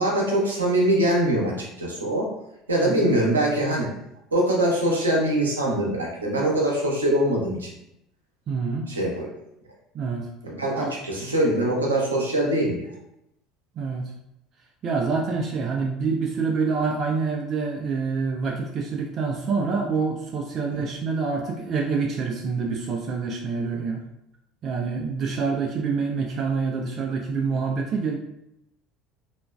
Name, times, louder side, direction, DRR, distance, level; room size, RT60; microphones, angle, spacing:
voice 1, 0.0-2.3 2.7-3.9 4.3-7.7 8.9-9.3 10.4-12.9 20.7-20.9 23.7-23.8, right 1 dB, 80° right, -3 dB, 0.7 m, -23 dB
voice 2, 8.5-8.9 9.9-10.3 10.8-10.9 13.8-14.1 14.8-24.0 24.6-28.2, right 4 dB, 40° right, 1 dB, 0.4 m, -26 dB
2.9 x 2.4 x 2.2 m, 0.83 s
figure-of-eight pair, 65°, 0 cm